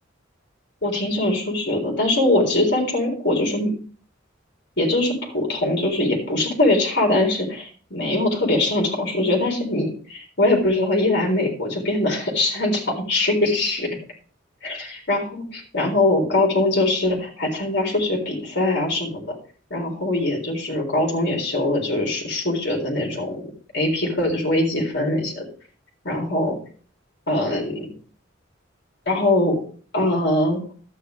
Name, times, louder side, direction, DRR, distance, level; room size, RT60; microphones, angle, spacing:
voice 1, 0.8-3.7 4.8-13.9 14.6-19.4 19.7-23.4 23.7-25.4 26.1-26.6 27.3-27.9 29.1-29.6 29.9-30.6, left 2 dB, 60° left, 0 dB, 3.8 m, -22 dB
12.5 x 9.0 x 3.5 m, 0.42 s
head